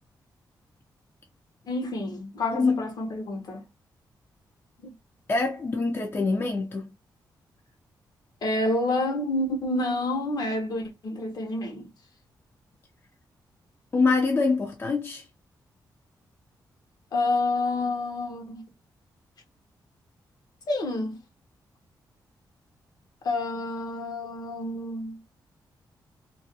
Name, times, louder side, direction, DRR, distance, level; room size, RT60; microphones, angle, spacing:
voice 1, 1.7-3.7 4.8-4.9 8.4-11.9 17.1-18.6 20.7-21.2 23.2-25.2, left 2 dB, 55° left, 0.8 m, -28 dB
voice 2, 2.5-2.8 5.3-6.9 13.9-15.2, left 3 dB, 30° left, 0.4 m, -24 dB
2.4 x 2.2 x 2.7 m
cardioid pair, 105°, 8 cm